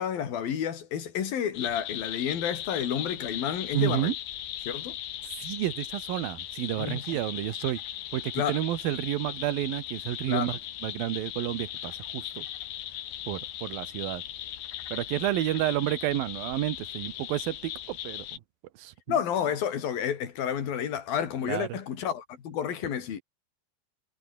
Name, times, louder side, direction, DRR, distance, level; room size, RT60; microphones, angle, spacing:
voice 1, 0.0-4.1 4.6-5.0 6.8-7.2 8.4-8.6 10.3-10.5 19.1-23.2, left 8 dB, 60° left, 4.5 m, -30 dB
sound 1, 1.5-18.4, left 12 dB, 80° left, 3.9 m, -38 dB
voice 2, 3.7-4.1 5.4-7.8 8.1-12.5 13.3-14.2 14.9-18.4 18.8-19.2 21.4-21.8, right 14 dB, 70° right, 2.8 m, -30 dB
omnidirectional pair, 4.8 m